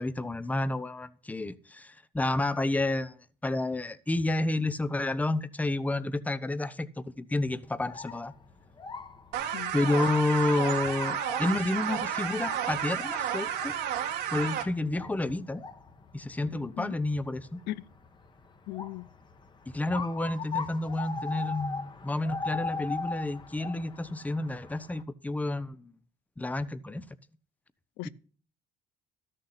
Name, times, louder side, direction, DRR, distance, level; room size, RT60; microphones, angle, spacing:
voice 1, 0.0-3.2 3.4-8.3 9.7-13.8 14.3-15.6 16.1-17.6 19.7-25.9 26.4-27.0 28.0-28.1, left 2 dB, 10° left, 0.7 m, -30 dB
sound 1, 7.6-25.0, left 4 dB, 25° left, 1.1 m, -41 dB
sound 2, 9.3-14.6, right 9 dB, 80° right, 1.7 m, -32 dB
voice 2, 16.5-16.9 17.7-17.8 18.7-19.1 28.0-28.1, left 16 dB, 85° left, 0.5 m, -37 dB
12.5 x 6.7 x 5.7 m
cardioid pair, 110°, 17 cm